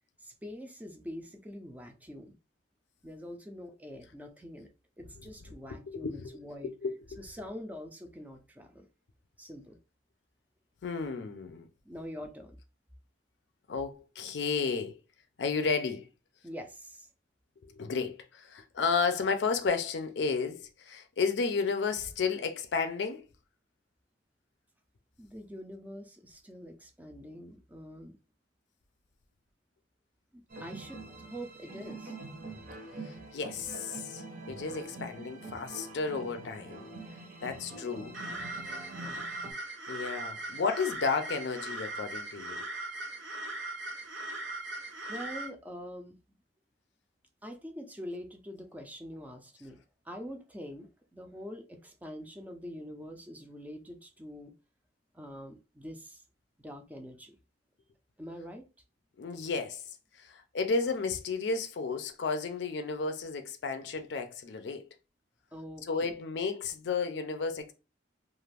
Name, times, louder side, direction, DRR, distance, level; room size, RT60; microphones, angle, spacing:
voice 1, 0.2-2.4 3.0-4.7 5.0-6.7 7.2-8.9 9.4-9.8 11.9-12.6 16.4-17.1 25.2-28.2 30.3-32.2 38.0-38.5 38.9-39.4 45.1-46.2 47.4-49.8 50.0-54.5 55.1-56.2 56.6-57.4 58.2-58.6 65.5-66.1, equal, 10° right, 0.4 m, -45 dB
voice 2, 5.9-6.3 6.6-7.2 10.8-11.7 13.7-15.0 15.4-16.1 17.7-23.2 33.1-36.8 37.4-38.2 39.9-42.6 59.2-59.8 60.2-64.9 65.9-67.7, left 4 dB, 70° left, 0.5 m, -32 dB
sound 1, 30.5-39.5, right 2 dB, 50° right, 0.8 m, -45 dB
sound 2, 38.1-45.5, right 2 dB, 85° right, 0.8 m, -39 dB
2.4 x 2.4 x 3.3 m
head